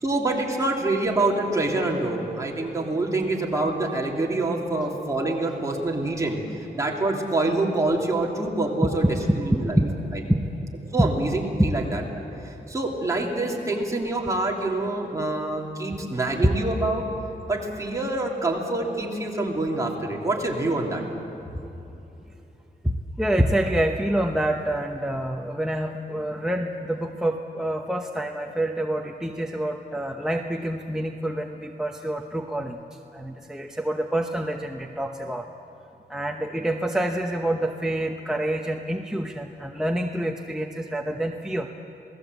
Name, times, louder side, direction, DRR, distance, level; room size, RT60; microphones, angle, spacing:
voice 1, 0.0-6.4 6.7-9.0 9.4-9.8 10.9-12.0 12.4-17.0 17.5-21.0, right 2 dB, 20° right, -2 dB, 3.2 m, -26 dB
voice 2, 9.6-10.0 10.3-10.5 11.0-11.1 11.6-11.7 22.8-32.8 33.1-35.5 36.1-41.7, right 1 dB, 5° right, 2 dB, 0.8 m, -27 dB
27.5 x 18.5 x 8.1 m, 3.0 s
wide cardioid pair, 155°, 17 cm